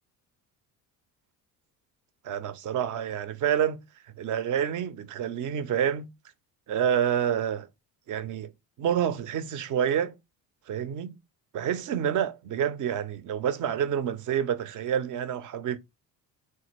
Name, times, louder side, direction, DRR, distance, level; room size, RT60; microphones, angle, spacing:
voice 1, 2.2-3.8 4.2-6.1 6.7-7.7 8.1-8.5 8.8-10.2 10.7-11.2 11.5-15.8, right 9 dB, 40° right, 0.5 m, -28 dB
3.3 x 2.3 x 3.0 m
hypercardioid pair, 60°, 50 cm